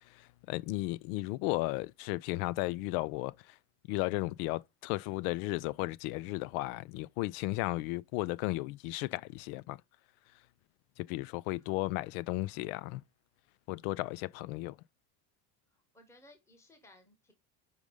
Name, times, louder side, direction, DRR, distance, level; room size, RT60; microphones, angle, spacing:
voice 1, 0.5-3.3 3.9-9.8 11.1-13.0 13.7-14.8, left 19 dB, 85° left, 0.5 m, -34 dB
voice 2, 15.7-17.3, left 1 dB, 5° left, 1.1 m, -60 dB
5.2 x 4.8 x 5.4 m
cardioid pair, 150°, 42 cm